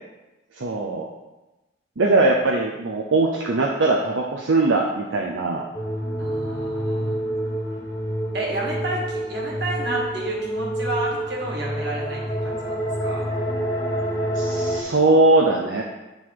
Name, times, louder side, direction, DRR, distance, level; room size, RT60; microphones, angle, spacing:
voice 1, 0.5-1.1 2.0-5.7 14.3-15.8, right 2 dB, 70° right, -1 dB, 0.7 m, -20 dB
sound 1, 5.7-14.8, right 1 dB, 15° left, 0.8 m, -27 dB
voice 2, 6.2-7.2 8.3-13.3, right 2 dB, 55° right, -3 dB, 1.7 m, -30 dB
8.6 x 4.0 x 4.7 m, 1.1 s
head